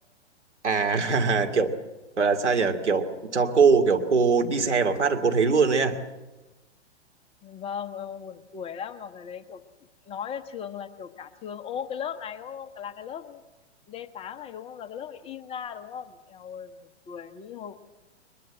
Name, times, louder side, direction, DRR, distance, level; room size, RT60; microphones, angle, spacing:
voice 1, 0.6-1.8 2.2-6.0, right 5 dB, 75° right, 4 dB, 2.4 m, -22 dB
voice 2, 7.4-9.6 10.1-13.4 13.9-17.8, left 8 dB, 15° left, 9 dB, 0.8 m, -37 dB
22.0 x 21.5 x 7.8 m, 1.1 s
figure-of-eight pair, 115°, 35 cm